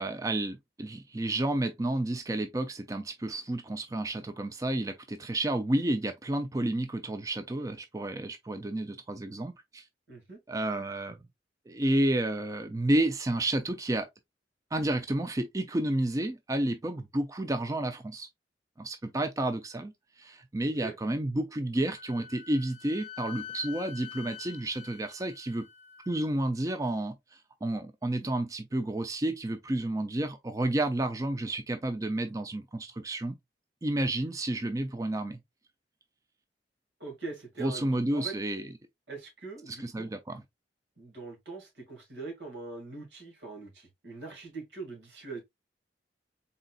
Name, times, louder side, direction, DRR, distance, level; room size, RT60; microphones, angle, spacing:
voice 1, 0.0-9.8 10.5-11.2 11.7-14.1 14.7-18.3 18.8-19.9 20.2-25.6 26.1-27.1 27.6-33.3 33.8-35.4 37.6-38.7 39.7-40.4, right 1 dB, 20° right, 0.4 m, -31 dB
voice 2, 10.1-10.4 20.6-21.0 37.0-38.4 39.1-40.1 41.0-45.4, right 3 dB, 80° right, 2.1 m, -42 dB
Wind instrument woodwind instrument, 21.9-26.4, left 9 dB, 35° left, 0.5 m, -46 dB
4.0 x 3.9 x 2.3 m
head